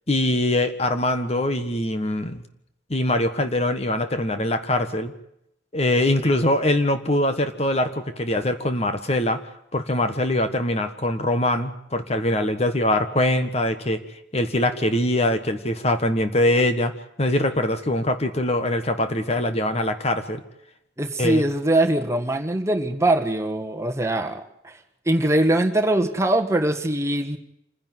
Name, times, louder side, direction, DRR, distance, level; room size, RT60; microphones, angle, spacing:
voice 1, 0.1-2.4 2.9-5.1 5.7-9.4 9.7-14.0 14.3-16.9 17.2-20.4 21.2-21.4, left 1 dB, 35° left, 9 dB, 1.4 m, -23 dB
voice 2, 21.0-24.8 25.0-27.4, right 1 dB, 15° right, 4 dB, 1.6 m, -22 dB
27.5 x 10.5 x 9.2 m, 0.79 s
head